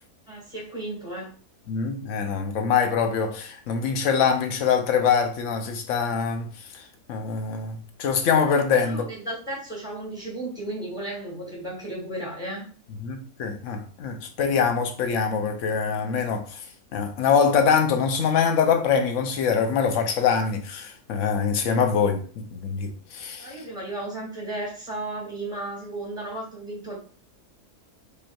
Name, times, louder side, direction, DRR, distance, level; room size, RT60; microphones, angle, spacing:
voice 1, 0.3-1.3 8.7-12.7 23.3-27.0, right 1 dB, 10° left, 1.5 m, -34 dB
voice 2, 1.7-6.8 7.1-9.0 13.0-16.6 16.9-23.5, left 6 dB, 65° left, 0.9 m, -24 dB
5.0 x 3.0 x 2.3 m
omnidirectional pair, 1.7 m